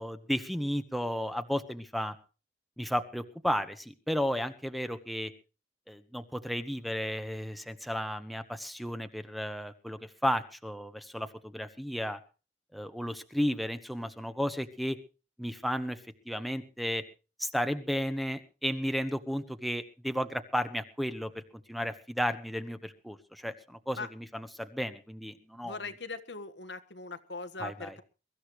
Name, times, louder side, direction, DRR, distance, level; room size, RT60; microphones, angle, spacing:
voice 1, 0.0-2.1 2.8-5.3 5.9-12.2 12.7-15.0 15.4-17.0 17.4-21.4 21.7-25.8 27.6-28.0, equal, ahead, 10 dB, 1.3 m, -33 dB
voice 2, 25.6-28.0, left 3 dB, 85° left, 9 dB, 1.7 m, -40 dB
23.0 x 14.0 x 3.2 m, 0.34 s
head